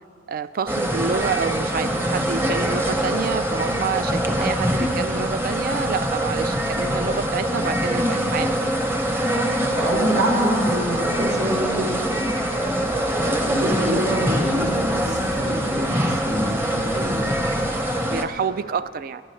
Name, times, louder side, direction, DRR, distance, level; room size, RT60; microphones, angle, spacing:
voice 1, 0.3-8.6 17.8-19.2, right 6 dB, 50° right, 14 dB, 0.3 m, -28 dB
sound 1, 0.7-18.2, equal, 15° right, 0.8 m, -24 dB
voice 2, 9.7-11.9 12.5-17.2, equal, 85° right, -4 dB, 3.9 m, -26 dB
27.0 x 11.0 x 3.2 m, 2.4 s
head